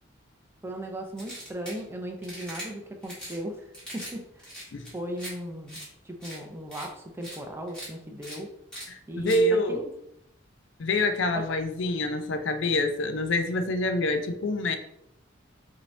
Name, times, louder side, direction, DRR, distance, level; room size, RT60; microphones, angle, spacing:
voice 1, 0.6-3.7 3.9-4.5 4.9-5.8 6.0-8.5 9.1-9.9 11.3-11.4, equal, 10° right, 3 dB, 0.5 m, -37 dB
sound 1, 1.2-1.8 2.2-2.7 3.0-3.4 3.7-4.1 4.4-5.3 5.7-5.9 6.2-6.4 6.7-6.9 7.2-7.4 7.7-7.9 8.2-8.4 8.7-8.9 9.3-9.4, equal, 5° left, 1.8 m, -40 dB
voice 2, 8.9-9.8 10.8-14.8, left 1 dB, 65° left, 8 dB, 0.5 m, -26 dB
5.7 x 2.7 x 3.2 m, 0.78 s
head